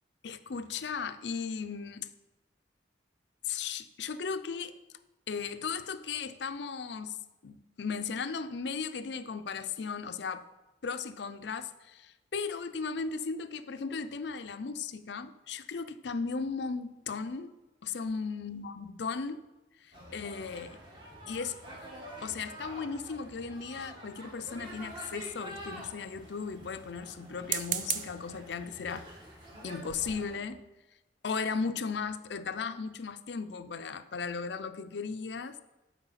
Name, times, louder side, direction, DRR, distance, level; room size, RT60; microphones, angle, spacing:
voice 1, 0.2-2.1 3.5-4.7 5.3-10.4 10.8-17.6 17.8-19.5 19.8-20.8 21.3-21.6 22.2-29.1 29.6-30.6 31.2-35.6, left 5 dB, 65° left, 11 dB, 0.5 m, -36 dB
sound 1, 19.9-30.4, equal, 25° right, 1.9 m, -47 dB
sound 2, 24.6-25.4 27.3-28.2 29.0-29.2 29.6-29.7 29.9-30.2, right 9 dB, 45° right, 0.5 m, -36 dB
12.0 x 4.6 x 5.7 m, 1.1 s
head